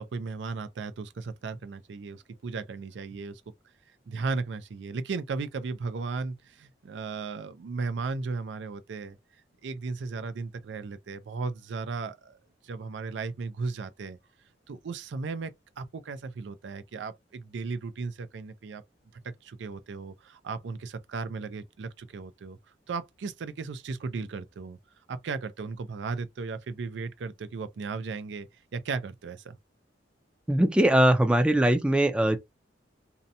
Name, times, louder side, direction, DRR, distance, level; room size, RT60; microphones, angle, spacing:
voice 1, 0.0-3.4 4.1-9.2 9.6-12.4 12.6-14.2 14.7-15.5 15.8-18.8 19.2-22.6 22.9-24.8 25.1-29.6, right 4 dB, 80° right, 0.4 m, -35 dB
voice 2, 30.5-32.4, right 1 dB, 5° right, 0.4 m, -21 dB
2.7 x 2.1 x 2.6 m
head